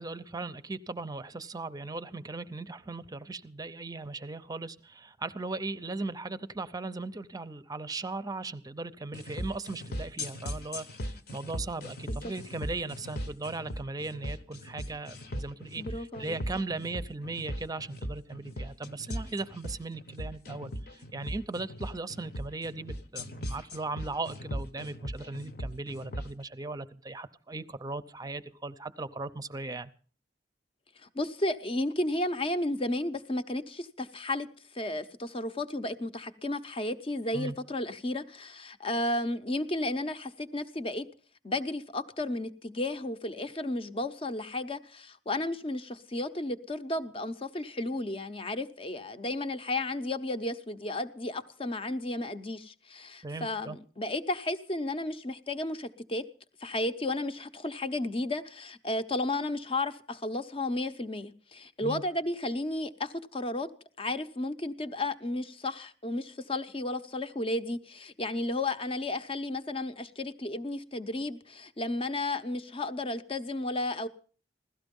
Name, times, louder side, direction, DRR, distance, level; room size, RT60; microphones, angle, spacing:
voice 1, 0.0-29.9 37.3-37.6 53.2-53.8 61.8-62.0, right 3 dB, 20° right, 0.6 m, -38 dB
sound 1, 9.1-26.3, equal, 60° left, 1.1 m, -39 dB
voice 2, 15.8-16.4 31.0-34.5 34.7-41.1 41.4-56.2 56.6-63.7 64.0-74.1, left 2 dB, 30° left, 0.8 m, -33 dB
16.5 x 13.0 x 5.3 m
head